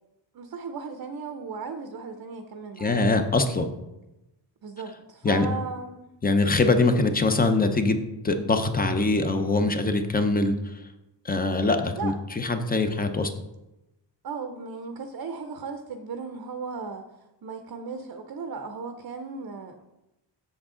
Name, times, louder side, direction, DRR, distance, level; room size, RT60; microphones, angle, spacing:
voice 1, 0.3-3.2 4.6-4.9 5.2-6.1 12.0-12.1 14.2-17.0 17.4-19.8, right 4 dB, 50° right, 6 dB, 0.6 m, -36 dB
voice 2, 2.8-3.7 5.2-5.5 6.2-8.0 8.2-10.7 11.2-13.3, left 3 dB, 20° left, 7 dB, 0.5 m, -23 dB
7.3 x 7.3 x 3.7 m, 0.95 s
wide cardioid pair, 170°, 45 cm